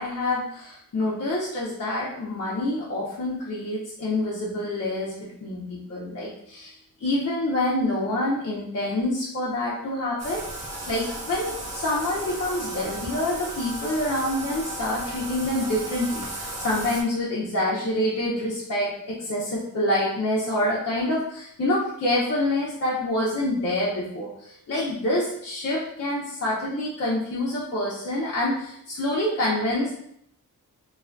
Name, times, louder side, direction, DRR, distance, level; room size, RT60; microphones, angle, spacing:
voice 1, 0.0-30.0, left 1 dB, 45° left, -6 dB, 0.6 m, -27 dB
Bathtub (filling or washing), 10.2-17.0, right 1 dB, 45° right, 0.6 m, -35 dB
2.4 x 2.1 x 2.4 m, 0.72 s
cardioid pair, 70°, 36 cm